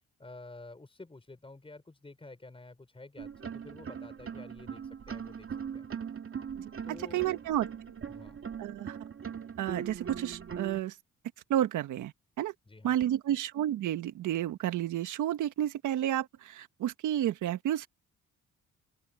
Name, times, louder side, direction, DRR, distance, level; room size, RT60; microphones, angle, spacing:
voice 1, 0.2-5.9 6.8-7.4 8.1-8.4 12.7-13.0, left 2 dB, 20° left, 6.0 m, -50 dB
sound 1, 3.2-10.8, right 7 dB, 45° right, 2.7 m, -40 dB
voice 2, 7.1-7.7 8.6-9.0 9.6-11.0 11.5-12.5 12.8-17.9, right 12 dB, 80° right, 1.5 m, -31 dB
open air
cardioid pair, 90°, 30 cm